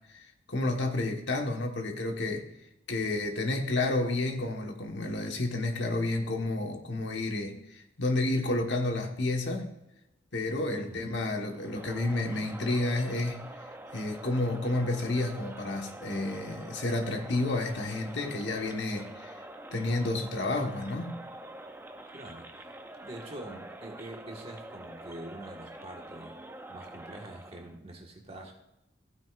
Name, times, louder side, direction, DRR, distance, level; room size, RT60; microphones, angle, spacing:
voice 1, 0.1-2.5 2.9-9.7 10.3-13.5 13.9-19.3 19.7-21.2, left 2 dB, 65° left, 2 dB, 1.3 m, -30 dB
voice 2, 10.7-11.2 22.1-22.7 23.0-26.4 26.7-28.5, right 1 dB, 30° right, 1 dB, 1.5 m, -45 dB
Crowd, 11.5-27.8, right 1 dB, 10° right, 0.5 m, -46 dB
15.5 x 9.0 x 2.5 m, 0.92 s
head